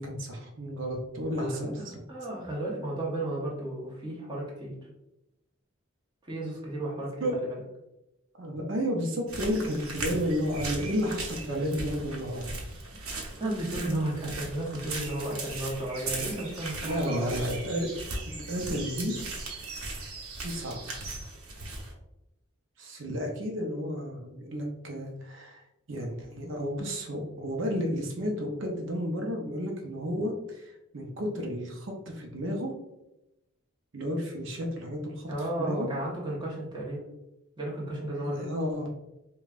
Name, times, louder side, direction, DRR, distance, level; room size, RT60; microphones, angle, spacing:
voice 1, 0.0-1.9 7.2-7.4 8.4-12.5 16.8-17.9 18.5-19.2 20.4-20.8 22.8-25.6 25.9-32.7 33.9-35.3 35.6-35.9 38.1-38.9, equal, 60° right, 1 dB, 0.6 m, -32 dB
voice 2, 1.4-4.7 6.2-7.6 13.0-17.3 35.3-37.0 37.6-38.4, right 1 dB, 20° right, -4 dB, 1.0 m, -34 dB
sound 1, 9.3-21.9, right 2 dB, 90° right, 0.8 m, -38 dB
5.1 x 2.2 x 2.4 m, 0.91 s
head